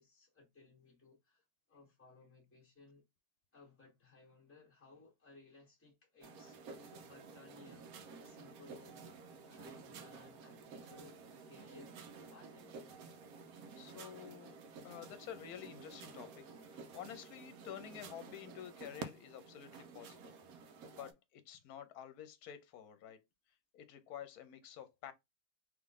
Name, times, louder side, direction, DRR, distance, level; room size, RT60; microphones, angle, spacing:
voice 1, 0.0-3.0 3.5-13.0, left 3 dB, 10° left, 1.5 m, -62 dB
sound 1, 6.2-21.1, right 4 dB, 70° right, 1.1 m, -52 dB
voice 2, 13.8-14.6 14.8-20.3 20.8-23.2 23.7-25.1, left 10 dB, 75° left, 1.2 m, -50 dB
3.7 x 3.1 x 3.6 m
omnidirectional pair, 1.7 m